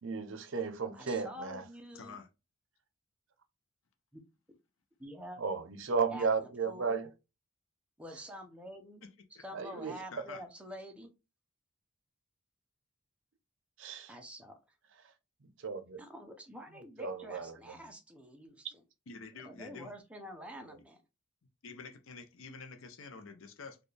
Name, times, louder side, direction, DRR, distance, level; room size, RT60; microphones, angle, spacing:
voice 1, 0.0-1.6 5.4-7.1 9.5-10.0 13.8-14.1 15.6-16.0 17.0-17.6, right 5 dB, 55° right, 0.6 m, -34 dB
voice 2, 0.9-2.2 4.1-4.2 5.0-5.4 6.1-7.0 8.0-9.0 9.3-11.1 14.1-14.6 16.0-18.8 19.4-21.0, equal, 5° right, 0.6 m, -47 dB
voice 3, 1.9-2.3 9.0-9.1 9.3-9.4 10.1-10.4 19.1-19.9 21.6-23.8, left 4 dB, 65° left, 0.6 m, -48 dB
4.2 x 2.3 x 3.2 m
head